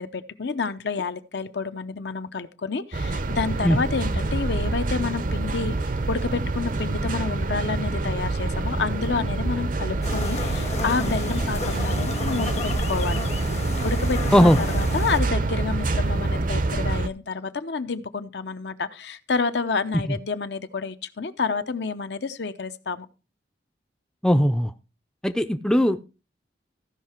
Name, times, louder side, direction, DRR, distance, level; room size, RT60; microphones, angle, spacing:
voice 1, 0.0-5.7 6.1-13.2 13.8-23.1, left 4 dB, 70° left, 10 dB, 0.8 m, -29 dB
sound 1, 2.9-17.1, right 2 dB, 45° right, 0.6 m, -26 dB
sound 2, 10.0-15.2, left 3 dB, 35° left, 0.9 m, -33 dB
voice 2, 24.2-24.7 25.2-26.0, equal, 5° left, 8 dB, 0.4 m, -18 dB
14.5 x 5.7 x 4.4 m, 0.31 s
head